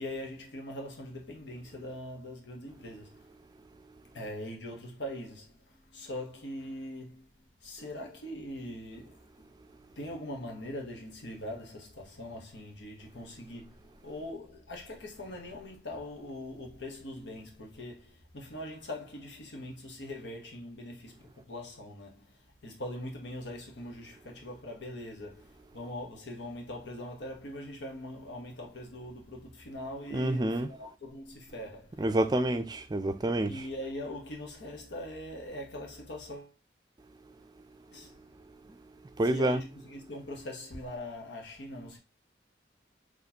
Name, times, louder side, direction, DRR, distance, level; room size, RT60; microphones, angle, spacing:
voice 1, 0.0-3.3 4.1-7.3 7.6-9.6 9.9-32.0 33.2-36.6 37.9-38.3 39.2-42.0, left 1 dB, 90° left, 1.1 m, -42 dB
voice 2, 30.1-30.7 32.0-33.5 39.2-39.6, right 1 dB, 25° right, 0.4 m, -28 dB
4.1 x 3.1 x 2.8 m
head